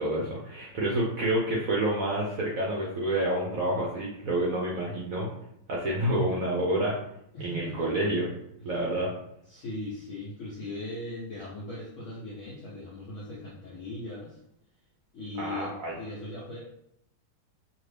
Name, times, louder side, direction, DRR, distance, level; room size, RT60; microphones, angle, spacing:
voice 1, 0.0-5.3 5.7-7.0 7.4-8.3 8.6-9.1 15.4-15.9, right 1 dB, 70° right, -3 dB, 0.8 m, -28 dB
voice 2, 7.3-7.9 8.6-8.8 9.5-14.4 15.1-16.6, left 2 dB, 70° left, -6 dB, 0.7 m, -39 dB
2.8 x 2.6 x 3.3 m, 0.75 s
omnidirectional pair, 2.0 m